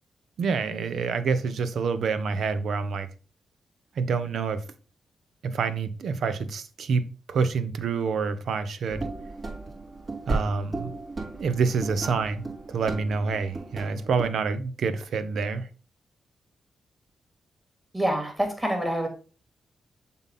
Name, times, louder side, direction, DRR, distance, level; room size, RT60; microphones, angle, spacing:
voice 1, 0.4-3.1 4.0-4.6 5.4-9.0 10.3-10.9 11.4-15.7, right 5 dB, 75° right, 0.7 m, -27 dB
sound 1, 8.9-14.3, right 3 dB, 45° right, 3.4 m, -35 dB
voice 2, 17.9-19.1, right 1 dB, 15° right, 3.1 m, -26 dB
7.1 x 3.9 x 4.1 m
cardioid pair, 70°, 0 cm